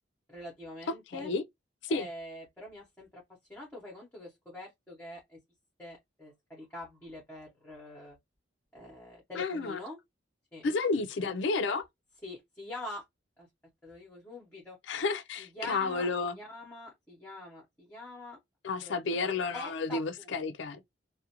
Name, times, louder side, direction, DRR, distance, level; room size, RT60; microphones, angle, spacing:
voice 1, 0.3-1.3 1.9-3.2 3.5-5.4 5.8-8.2 8.7-10.0 10.5-10.6 11.2-11.3 12.2-13.0 13.4-13.5 13.8-14.8 15.4-18.4 18.8-20.3, left 1 dB, 10° left, 0.8 m, -45 dB
voice 2, 1.1-1.4 1.8-2.1 9.4-9.8 10.6-11.8 14.9-16.4 18.6-20.8, left 4 dB, 70° left, 0.4 m, -31 dB
2.4 x 2.1 x 2.8 m
head